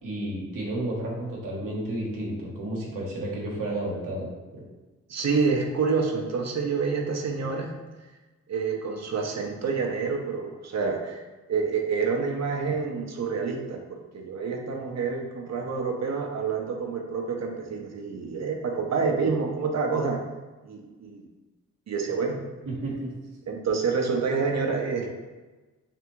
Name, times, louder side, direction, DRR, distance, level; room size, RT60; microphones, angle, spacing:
voice 1, 0.0-4.3 4.5-4.6 22.6-23.1, right 1 dB, 75° right, -3 dB, 1.1 m, -32 dB
voice 2, 5.1-7.7 8.5-11.2 11.5-20.2 20.6-21.3 21.9-22.4 23.5-25.1, right 5 dB, 55° right, 1 dB, 0.8 m, -28 dB
3.5 x 3.3 x 3.0 m, 1.2 s
cardioid pair, 55°, 33 cm